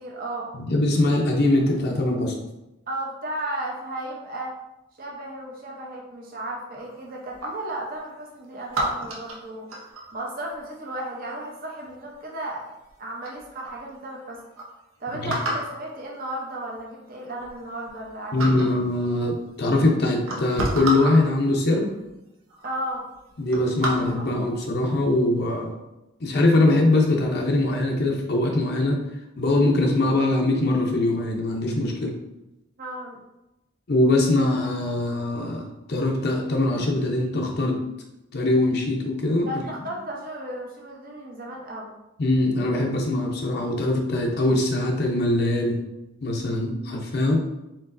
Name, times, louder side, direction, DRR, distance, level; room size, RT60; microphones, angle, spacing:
voice 1, 0.0-0.5 2.9-4.6 5.0-14.4 15.0-18.7 22.6-23.0 32.8-33.2 39.5-41.9, right 1 dB, 40° right, -2 dB, 0.7 m, -34 dB
voice 2, 0.5-2.3 15.2-15.3 18.3-21.9 23.4-25.7 26.2-29.0 29.4-32.1 33.9-37.8 38.3-39.5 42.2-45.8 46.2-47.4, left 2 dB, 50° left, 0 dB, 0.6 m, -22 dB
sound 1, 6.8-7.7 8.7-10.2 11.8-12.2 12.9-13.0 13.2-13.8 14.2-14.3 14.6-14.7 15.3-15.8 16.7-16.8 17.3-18.1 18.4-18.8 19.7-19.8 20.2-21.2 22.1-22.2 22.5-22.8 23.1-24.4 24.9-25.1, right 1 dB, 75° right, 0.9 m, -30 dB
4.5 x 3.8 x 2.6 m, 0.94 s
head